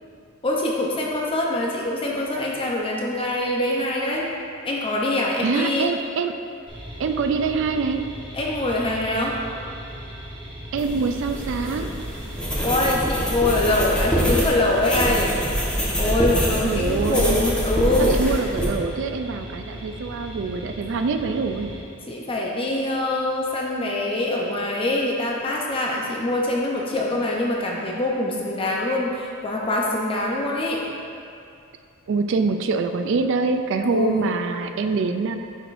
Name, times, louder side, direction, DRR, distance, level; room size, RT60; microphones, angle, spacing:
voice 1, 0.4-4.3 4.6-5.9 8.3-9.4 12.6-15.4 16.0-18.2 22.1-30.9 33.9-34.3, left 1 dB, 25° left, -2 dB, 0.6 m, -24 dB
voice 2, 5.4-6.3 7.0-8.0 10.7-12.0 16.6-17.5 18.0-21.7 32.1-35.4, right 4 dB, 60° right, 7 dB, 0.3 m, -24 dB
sound 1, 6.7-21.8, equal, 25° right, 1.0 m, -38 dB
sound 2, 10.8-18.7, equal, 5° left, 1.1 m, -25 dB
10.5 x 5.0 x 2.5 m, 2.4 s
head